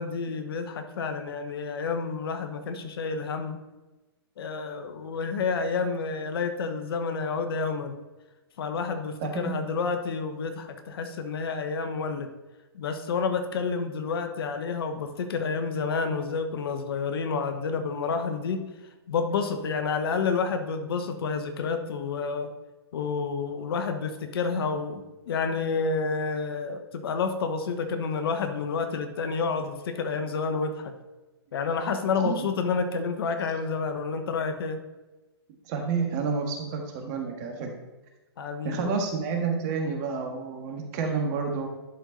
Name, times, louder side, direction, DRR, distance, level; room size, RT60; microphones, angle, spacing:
voice 1, 0.0-3.6 4.4-8.0 8.6-12.3 12.7-18.6 19.1-22.5 22.9-30.9 31.5-34.8 38.4-39.0, left 5 dB, 65° left, 7 dB, 1.2 m, -29 dB
voice 2, 9.2-9.5 32.2-32.5 35.7-37.7 38.6-41.7, right 5 dB, 40° right, 3 dB, 1.7 m, -29 dB
11.0 x 4.6 x 4.0 m, 1.1 s
hypercardioid pair, 130°, 14 cm